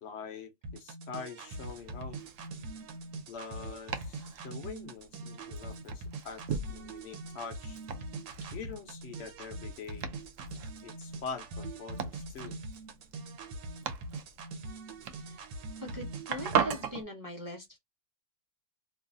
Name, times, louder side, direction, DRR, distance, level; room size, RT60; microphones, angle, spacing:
voice 1, 0.0-2.2 3.3-7.8 8.5-10.1 10.8-12.6, left 5 dB, 60° left, 0.7 m, -44 dB
sound 1, 0.6-16.6, right 2 dB, 90° right, 1.3 m, -43 dB
Domestic sounds home sounds, 1.5-17.0, right 7 dB, 70° right, 0.7 m, -40 dB
voice 2, 15.2-15.5 15.8-17.8, left 1 dB, 20° right, 0.5 m, -41 dB
3.1 x 2.5 x 2.4 m
omnidirectional pair, 1.8 m